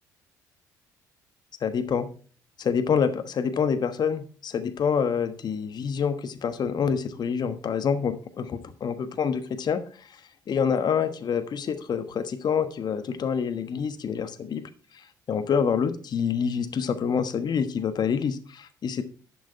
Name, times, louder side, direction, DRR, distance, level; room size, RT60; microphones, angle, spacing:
voice 1, 1.6-2.1 2.6-9.8 10.5-14.6 15.3-19.0, left 6 dB, 45° left, 9 dB, 1.3 m, -27 dB
11.0 x 6.2 x 4.4 m, 0.40 s
hypercardioid pair, 50°, 10 cm